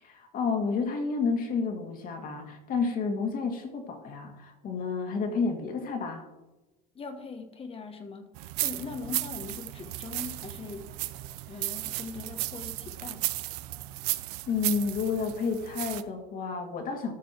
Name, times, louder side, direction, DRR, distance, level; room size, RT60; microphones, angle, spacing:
voice 1, 0.0-6.2 14.5-17.1, left 4 dB, 45° left, 4 dB, 2.0 m, -30 dB
voice 2, 6.9-10.9 11.5-13.3, left 4 dB, 30° left, 7 dB, 1.1 m, -41 dB
sound 1, 8.4-16.0, right 17 dB, 80° right, 0.6 m, -35 dB
13.5 x 5.4 x 4.4 m, 1.1 s
supercardioid pair, 100°, 20 cm